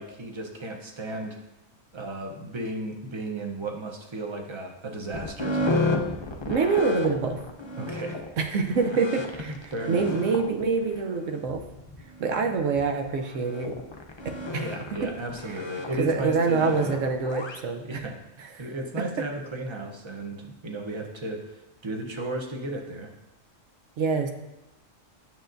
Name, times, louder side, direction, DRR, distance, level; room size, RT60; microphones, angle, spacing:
voice 1, 0.0-1.4 1.9-5.8 7.8-8.2 9.4-10.1 14.6-16.8 17.8-18.2 18.6-21.4 21.8-23.1, right 2 dB, 30° right, 2 dB, 0.7 m, -34 dB
sound 1, 5.1-17.6, left 2 dB, 30° left, 0.5 m, -32 dB
voice 2, 6.5-7.4 8.4-9.5 9.9-11.6 12.2-13.7 14.5-14.7 15.0-15.1 16.0-18.0 18.4-18.7 24.0-24.3, right 5 dB, 90° right, 4 dB, 1.1 m, -26 dB
8.9 x 7.0 x 2.6 m, 0.96 s
omnidirectional pair, 1.3 m